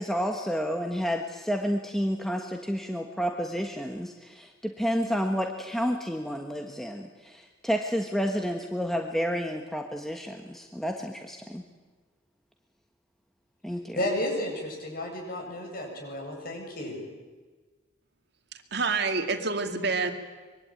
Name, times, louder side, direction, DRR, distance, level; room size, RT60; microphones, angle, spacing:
voice 1, 0.0-11.6 13.6-14.0, equal, ahead, 3 dB, 1.4 m, -30 dB
voice 2, 13.9-17.0, left 1 dB, 50° left, 1 dB, 7.8 m, -32 dB
voice 3, 18.5-20.1, right 4 dB, 60° right, 6 dB, 2.3 m, -28 dB
25.0 x 23.0 x 9.1 m, 1.3 s
head